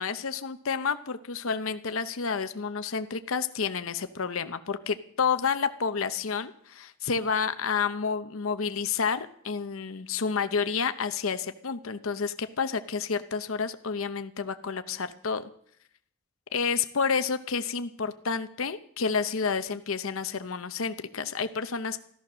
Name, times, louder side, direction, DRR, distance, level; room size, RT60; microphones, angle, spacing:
voice 1, 0.0-15.5 16.5-22.0, left 5 dB, 75° left, 10 dB, 0.8 m, -30 dB
14.5 x 13.5 x 6.2 m, 0.67 s
head